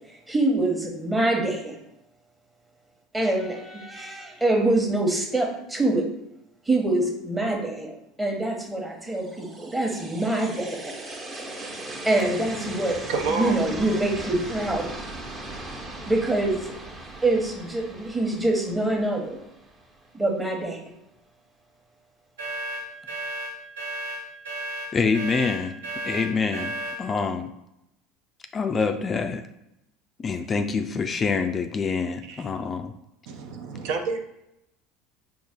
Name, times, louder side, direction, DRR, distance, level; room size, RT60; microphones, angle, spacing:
voice 1, 0.3-1.8 3.1-6.0 6.7-10.9 12.0-13.0 13.3-14.9 16.1-16.7 17.2-19.4 20.1-20.8, right 2 dB, 15° right, 1 dB, 1.0 m, -25 dB
sound 1, 9.1-20.1, right 2 dB, 40° right, 1.2 m, -38 dB
voice 2, 13.1-13.6 32.3-32.5 33.3-34.2, right 4 dB, 65° right, 5 dB, 0.5 m, -29 dB
sound 2, 22.4-27.0, right 1 dB, 80° right, 0.9 m, -33 dB
voice 3, 24.9-25.8 26.0-26.7 27.0-27.5 28.5-29.4 30.2-32.9, left 5 dB, 30° left, 7 dB, 0.3 m, -26 dB
4.6 x 2.5 x 3.6 m, 0.84 s
hypercardioid pair, 75°, 0 cm